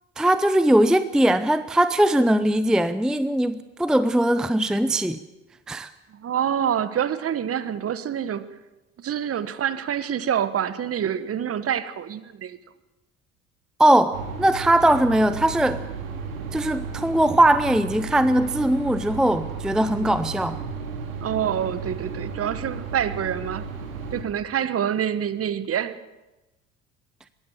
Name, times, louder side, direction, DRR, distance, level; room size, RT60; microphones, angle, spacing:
voice 1, 0.2-5.2 5.7-5.9 13.8-15.8 16.5-20.6, right 1 dB, ahead, 0.6 m, -20 dB
voice 2, 6.1-8.5 9.0-12.6 21.2-23.7 24.1-26.0, right 9 dB, 35° right, 1.3 m, -26 dB
sound 1, 14.1-24.2, right 5 dB, 75° right, 2.6 m, -34 dB
22.0 x 17.0 x 7.3 m
figure-of-eight pair, 60°, 42 cm